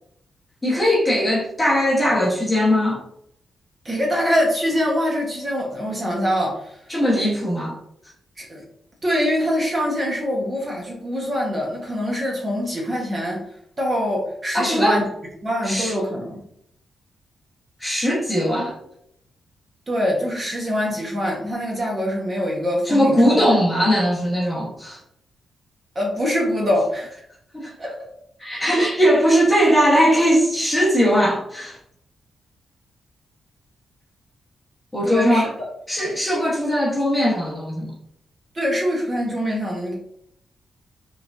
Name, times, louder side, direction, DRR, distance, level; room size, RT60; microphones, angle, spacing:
voice 1, 0.6-3.0 6.9-7.8 14.5-15.0 15.6-15.9 17.8-18.7 22.8-25.0 27.5-27.8 28.4-31.8 34.9-35.5 35.9-37.9, equal, 10° left, -4 dB, 1.1 m, -19 dB
voice 2, 3.8-6.7 8.4-8.6 9.0-13.4 13.8-15.0 15.4-16.4 19.9-23.3 25.9-27.2 27.8-27.9 35.0-35.5 38.5-39.9, equal, 25° right, -2 dB, 1.1 m, -24 dB
5.8 x 3.3 x 2.6 m, 0.72 s
wide cardioid pair, 170°, 0 cm